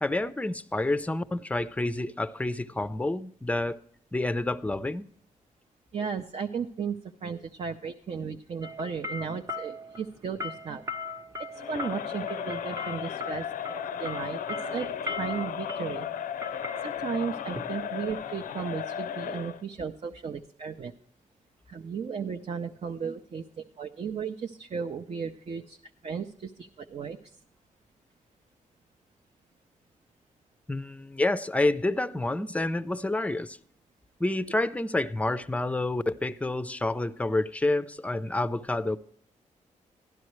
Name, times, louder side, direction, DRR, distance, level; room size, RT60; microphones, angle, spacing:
voice 1, 0.0-3.8 4.1-5.1 30.7-33.6 34.2-39.0, left 2 dB, 10° left, 0.5 m, -28 dB
voice 2, 5.9-10.8 11.5-13.5 14.0-16.1 16.8-20.9 21.7-25.8 26.0-27.3, right 6 dB, 50° right, 0.5 m, -35 dB
sound 1, 8.6-18.5, left 2 dB, 20° right, 0.7 m, -39 dB
Crowd, 11.5-19.6, left 9 dB, 85° left, 0.5 m, -35 dB
12.0 x 11.5 x 3.1 m
cardioid pair, 80°, 14 cm